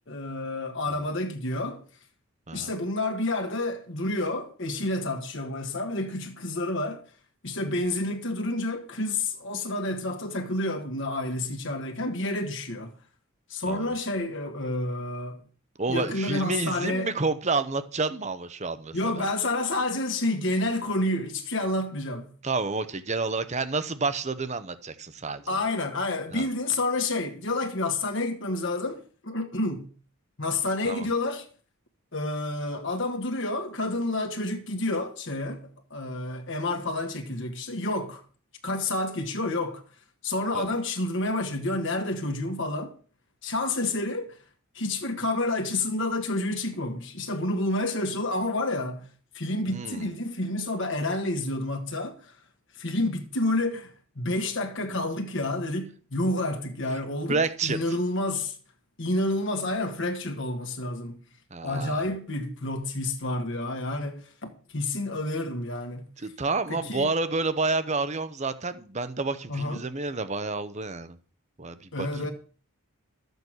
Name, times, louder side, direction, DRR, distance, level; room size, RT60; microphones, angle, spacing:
voice 1, 0.1-1.8 2.5-7.0 7.4-12.9 13.5-15.4 15.9-17.1 18.9-22.3 25.5-29.9 30.4-31.5 32.1-38.2 38.6-39.8 40.2-42.9 43.4-44.4 44.7-49.0 49.3-52.3 52.8-58.5 59.0-61.2 61.6-66.1 66.7-67.1 69.5-69.9 71.9-72.3, left 2 dB, 60° left, 1.7 m, -29 dB
voice 2, 15.8-19.3 22.4-25.6 26.3-26.5 30.8-31.1 40.5-40.7 49.7-50.1 57.3-57.8 61.5-62.0 66.2-71.2 71.6-72.1, right 3 dB, 30° right, 0.9 m, -29 dB
12.5 x 8.1 x 6.2 m
head